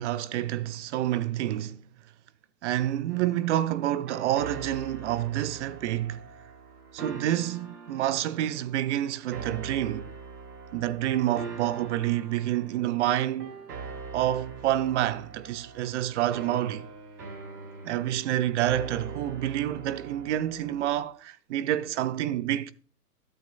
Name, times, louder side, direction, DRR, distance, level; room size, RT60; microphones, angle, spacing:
voice 1, 0.0-1.8 2.6-6.3 6.9-10.1 10.7-13.5 14.1-16.9 17.8-22.7, right 12 dB, 45° right, 0.8 m, -28 dB
sound 1, 3.1-21.0, right 4 dB, 75° right, 5.1 m, -43 dB
13.5 x 12.0 x 2.3 m
hypercardioid pair, 125°, 49 cm